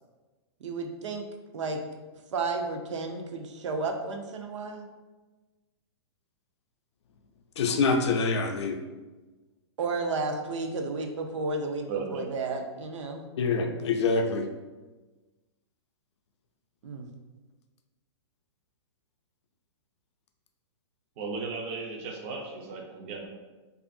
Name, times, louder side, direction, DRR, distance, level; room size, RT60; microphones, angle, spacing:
voice 1, 0.6-1.3 1.5-1.8 2.3-4.9 9.8-11.9 12.1-13.2 16.8-17.1, right 3 dB, 85° right, 4 dB, 0.5 m, -32 dB
voice 2, 7.6-8.8 13.4-14.5, left 4 dB, 70° left, 5 dB, 0.4 m, -25 dB
voice 3, 11.9-12.2 21.2-23.3, right 4 dB, 30° right, 0 dB, 0.4 m, -35 dB
2.6 x 2.4 x 2.5 m, 1.2 s
hypercardioid pair, 160°, 15 cm